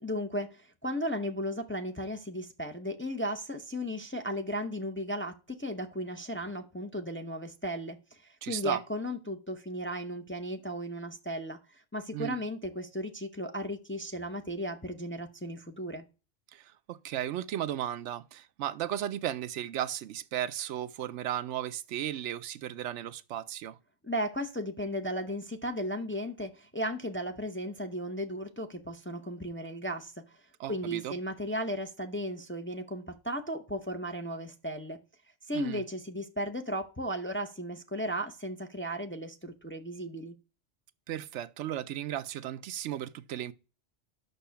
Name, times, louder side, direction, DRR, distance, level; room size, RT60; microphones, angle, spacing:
voice 1, 0.0-16.0 24.0-30.4 30.7-35.0 35.5-40.3, equal, 15° left, 0.5 m, -35 dB
voice 2, 8.4-8.8 12.1-12.4 16.5-23.8 30.6-31.1 35.5-35.8 41.1-43.5, right 11 dB, 85° right, 0.9 m, -35 dB
6.8 x 6.2 x 5.7 m
omnidirectional pair, 1.2 m